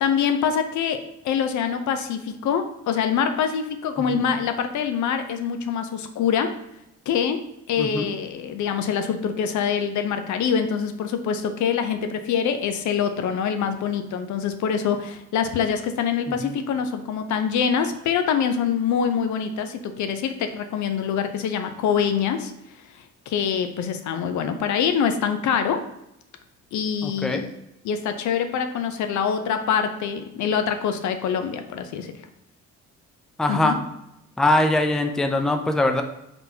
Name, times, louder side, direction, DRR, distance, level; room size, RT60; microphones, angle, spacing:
voice 1, 0.0-6.5 7.1-7.4 7.7-22.5 23.3-25.8 26.7-27.5 27.8-32.1 33.5-33.8, left 7 dB, 75° left, 7 dB, 0.6 m, -25 dB
voice 2, 7.8-8.1 16.3-16.6 27.0-27.5 33.4-33.8 34.4-36.0, left 2 dB, ahead, 5 dB, 0.4 m, -22 dB
3.9 x 3.8 x 2.8 m, 0.84 s
cardioid pair, 90°, 30 cm